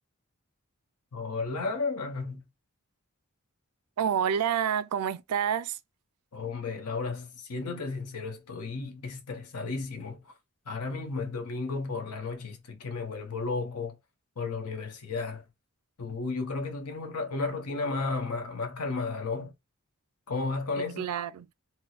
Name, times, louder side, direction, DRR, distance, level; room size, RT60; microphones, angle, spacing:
voice 1, 1.1-2.4 6.3-10.2 10.7-14.0 14.4-15.4 16.0-19.5 20.3-21.1, left 3 dB, 85° left, 0.8 m, -33 dB
voice 2, 4.0-5.8 20.8-21.5, right 8 dB, 85° right, 0.4 m, -28 dB
4.3 x 2.0 x 2.4 m
head